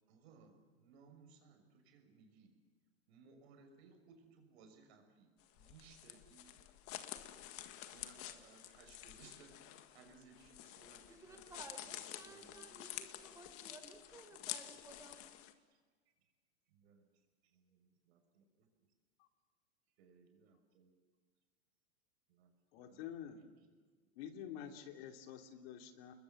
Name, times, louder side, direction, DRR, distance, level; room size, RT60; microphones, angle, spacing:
voice 1, 0.1-2.5 3.1-6.6 7.9-12.8 15.7-15.8 16.2-16.3 16.6-17.1 17.4-18.7 20.0-20.9 22.3-23.7, right 4 dB, 70° right, 4 dB, 6.3 m, -64 dB
sound 1, 5.4-15.5, left 12 dB, 45° left, 1.8 m, -50 dB
voice 2, 11.1-15.3, right 2 dB, 10° right, 5 dB, 4.9 m, -56 dB
voice 3, 22.7-23.4 24.2-26.1, left 9 dB, 60° left, 5 dB, 3.0 m, -48 dB
28.5 x 21.5 x 7.2 m, 1.4 s
hypercardioid pair, 120°, 33 cm